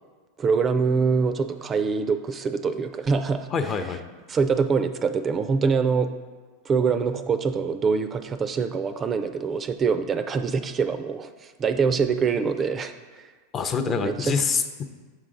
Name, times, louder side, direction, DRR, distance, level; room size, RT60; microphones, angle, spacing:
voice 1, 0.4-3.5 4.3-6.1 6.7-13.2 13.9-14.4, right 5 dB, 25° right, 10 dB, 0.4 m, -24 dB
voice 2, 3.5-4.0 13.5-14.8, left 5 dB, 30° left, 8 dB, 0.5 m, -25 dB
7.4 x 4.8 x 3.8 m, 1.4 s
hypercardioid pair, 110°, 0 cm